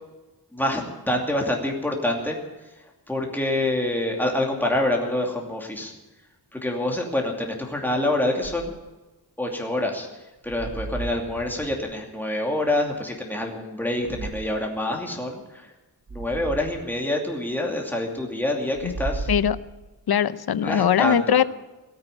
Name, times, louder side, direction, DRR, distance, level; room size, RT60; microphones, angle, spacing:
voice 1, 0.5-2.4 3.1-5.9 6.5-8.7 9.4-10.1 10.4-15.7 16.1-19.3 20.6-21.4, left 1 dB, 5° left, 0 dB, 2.6 m, -26 dB
sound 1, 8.4-8.9 10.4-12.0 14.0-14.7 16.1-16.8 18.7-20.1, right 3 dB, 35° right, 0.8 m, -35 dB
voice 2, 20.1-21.4, left 9 dB, 75° left, 16 dB, 0.7 m, -21 dB
18.0 x 8.9 x 8.9 m, 1.1 s
wide cardioid pair, 140°, 38 cm